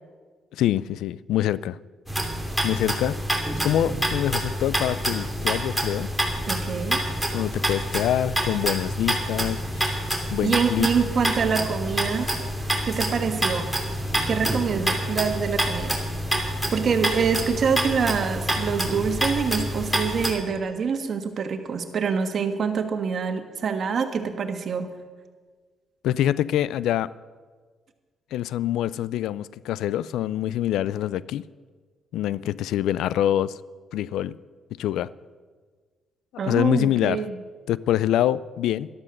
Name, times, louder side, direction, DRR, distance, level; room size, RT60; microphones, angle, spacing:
voice 1, 0.5-1.8 2.6-3.2 3.6-6.1 7.3-10.0 10.3-10.9 26.0-27.1 28.3-31.4 32.1-33.6 33.9-34.4 34.8-35.1 36.4-37.2 37.7-38.9, left 12 dB, 85° left, 20 dB, 0.4 m, -25 dB
sound 1, 2.1-20.3, equal, ahead, 3.0 m, -27 dB
voice 2, 6.5-7.0 10.4-12.3 12.8-13.7 14.3-16.0 16.7-24.9 36.4-37.4, right 6 dB, 55° right, 7 dB, 1.6 m, -25 dB
13.0 x 12.0 x 6.6 m, 1.5 s
cardioid pair, 90°, 0 cm